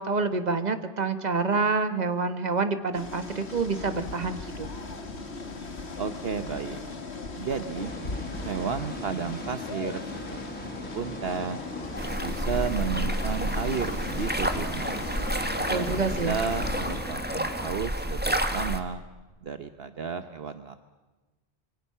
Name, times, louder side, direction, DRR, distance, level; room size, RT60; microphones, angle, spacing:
voice 1, 0.0-4.7 15.7-16.3, right 4 dB, 40° right, 9 dB, 1.6 m, -27 dB
sound 1, 2.9-17.0, left 3 dB, 70° left, 2.1 m, -38 dB
voice 2, 6.0-6.8 7.4-7.9 8.4-11.6 12.2-15.1 15.6-19.0 19.4-20.8, right 6 dB, 60° right, 9 dB, 1.2 m, -33 dB
sound 2, 7.7-17.7, left 1 dB, 10° left, 2.0 m, -40 dB
sound 3, 12.0-18.8, right 1 dB, 10° right, 1.6 m, -30 dB
26.5 x 24.5 x 5.6 m, 1.2 s
omnidirectional pair, 1.1 m